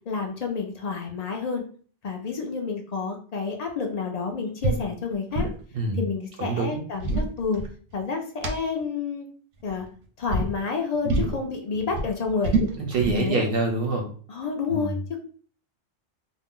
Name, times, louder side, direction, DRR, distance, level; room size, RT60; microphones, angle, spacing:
voice 1, 0.1-1.6 2.0-5.5 5.9-7.6 7.9-9.3 9.6-9.9 10.2-12.5 13.2-13.4 14.3-15.2, left 5 dB, 55° left, 3 dB, 0.4 m, -29 dB
sound 1, 4.6-4.8 5.1-5.6 6.8-8.0 8.4-8.5 9.6-9.9 10.3-10.5 11.1-11.4 11.7-13.3, right 2 dB, 90° right, 1.0 m, -26 dB
voice 2, 6.4-6.8 11.0-11.3 12.8-14.1 14.7-14.9, right 3 dB, 60° right, 3 dB, 0.7 m, -26 dB
2.5 x 2.0 x 3.6 m, 0.44 s
omnidirectional pair, 1.3 m